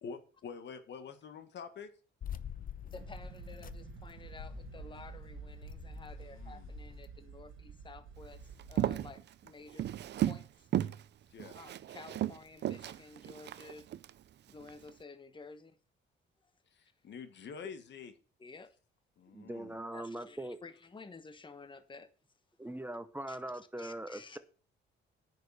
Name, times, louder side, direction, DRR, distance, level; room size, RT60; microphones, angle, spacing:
voice 1, 0.0-1.9 6.3-6.7 11.3-11.6 16.7-18.1 19.2-19.8, left 6 dB, 65° left, 1.8 m, -47 dB
sound 1, 2.2-7.1, left 9 dB, 45° left, 0.7 m, -47 dB
voice 2, 2.8-9.9 10.2-10.7 11.5-13.9 14.5-15.8 16.4-16.5 18.4-18.8 19.9-22.1 22.6-22.8 23.3-23.4 23.8-24.4, left 4 dB, 25° left, 1.1 m, -52 dB
sound 2, 2.9-9.1, right 7 dB, 90° right, 1.2 m, -50 dB
Walk footsteps, 8.6-10.5 10.7-11.0 11.4-14.1 14.6-14.9, right 12 dB, 60° right, 0.6 m, -34 dB
voice 3, 19.3-20.6 22.6-24.4, right 1 dB, 10° right, 0.9 m, -41 dB
9.2 x 6.6 x 6.6 m
cardioid pair, 90°, 20 cm